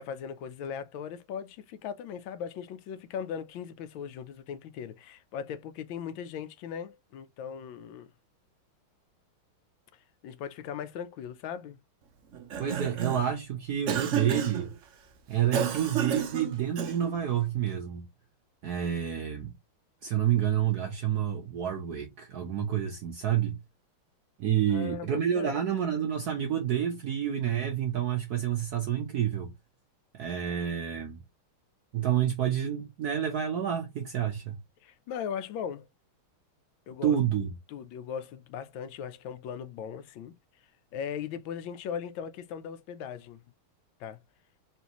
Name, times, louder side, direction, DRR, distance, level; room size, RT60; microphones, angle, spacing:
voice 1, 0.0-8.1 9.9-11.8 24.7-25.7 34.8-35.9 36.9-37.2 37.7-40.3 40.9-43.4 44.0-44.2, left 8 dB, 75° left, 1.3 m, -38 dB
Cough, 12.3-13.3 13.9-14.7 15.5-17.2, right 7 dB, 85° right, 0.6 m, -32 dB
voice 2, 12.6-14.7 15.3-18.0 18.6-19.5 20.0-23.6 24.4-29.5 30.1-31.2 31.9-34.6 37.0-37.5, right 9 dB, 60° right, 1.0 m, -29 dB
4.4 x 3.3 x 2.9 m
omnidirectional pair, 2.3 m